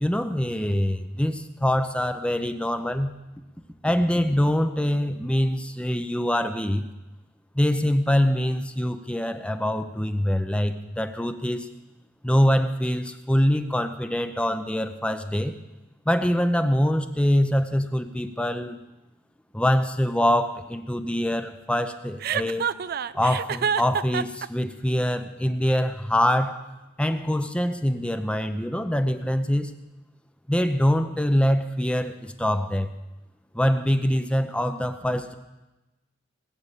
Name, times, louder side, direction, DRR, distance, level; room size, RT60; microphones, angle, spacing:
voice 1, 0.0-3.1 3.8-6.8 7.5-11.7 12.2-15.6 16.1-18.8 19.5-22.6 23.1-26.6 27.0-29.7 30.5-32.9 33.5-35.3, equal, 5° left, 9 dB, 0.6 m, -24 dB
Chuckle chortle, 22.2-24.5, right 7 dB, 50° right, 0.4 m, -27 dB
20.0 x 8.7 x 6.8 m, 1.0 s
head